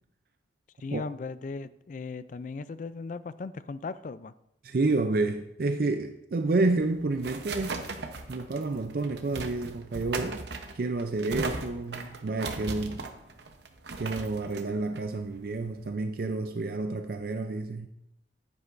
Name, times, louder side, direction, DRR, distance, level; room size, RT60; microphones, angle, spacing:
voice 1, 0.8-4.3, left 4 dB, 45° left, 0.3 m, -37 dB
voice 2, 4.6-7.9 8.3-10.4 10.7-13.1 14.0-17.9, right 3 dB, 50° right, 0.4 m, -29 dB
sound 1, 6.6-15.9, right 3 dB, 65° right, 0.8 m, -38 dB
9.6 x 9.5 x 2.5 m
head